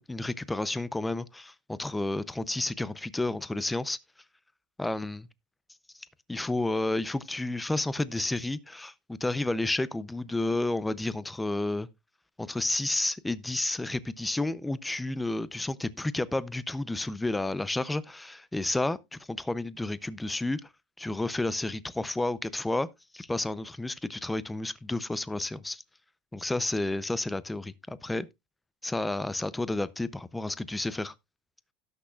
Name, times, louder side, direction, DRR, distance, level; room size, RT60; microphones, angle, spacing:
voice 1, 0.0-4.0 4.8-5.3 6.3-11.9 12.4-20.7 21.0-22.9 23.1-25.8 26.3-28.3 28.8-31.1, left 2 dB, 5° left, 0.5 m, -31 dB
17.5 x 6.3 x 2.3 m
supercardioid pair, 145°, 0 cm